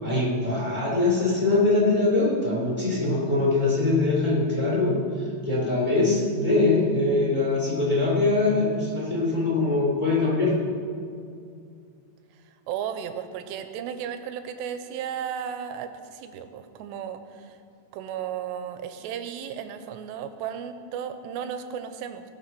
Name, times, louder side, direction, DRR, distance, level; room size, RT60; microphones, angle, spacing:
voice 1, 0.0-5.0 5.4-10.6, left 2 dB, 10° left, -5 dB, 2.5 m, -23 dB
voice 2, 12.7-17.6 17.9-22.2, right 8 dB, 85° right, 8 dB, 2.8 m, -34 dB
19.0 x 6.4 x 6.0 m, 2.4 s
omnidirectional pair, 5.0 m